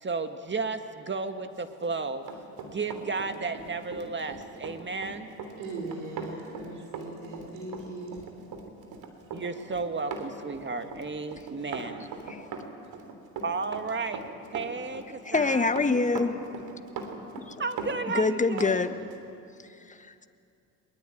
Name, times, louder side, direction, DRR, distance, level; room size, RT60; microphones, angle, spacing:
voice 1, 0.0-2.2 2.6-5.3 9.3-12.1 13.4-14.2 14.5-15.6 17.6-18.8, right 4 dB, 25° right, 7 dB, 2.0 m, -33 dB
Run, 1.7-18.8 19.1-19.3, right 5 dB, 65° right, 3.4 m, -40 dB
voice 2, 5.6-8.2, right 3 dB, 85° right, -3 dB, 3.8 m, -39 dB
voice 3, 15.2-16.4 17.4-17.6 18.1-18.9 19.6-20.3, left 3 dB, 20° left, 8 dB, 1.6 m, -26 dB
22.0 x 21.5 x 9.3 m, 2.5 s
hypercardioid pair, 70°, 40 cm